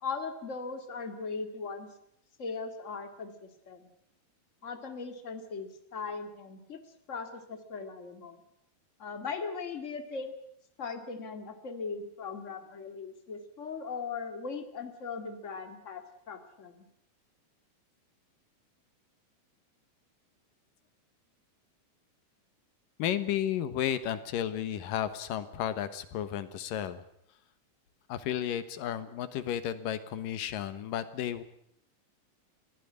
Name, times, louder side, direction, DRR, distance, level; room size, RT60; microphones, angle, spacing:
voice 1, 0.0-1.9 2.4-3.9 4.6-6.8 7.1-8.4 9.0-10.3 10.8-16.9, left 4 dB, 25° left, 8 dB, 1.9 m, -39 dB
voice 2, 23.0-27.0 28.1-31.4, left 10 dB, 70° left, 13 dB, 2.8 m, -33 dB
21.5 x 16.0 x 9.7 m, 0.74 s
omnidirectional pair, 4.3 m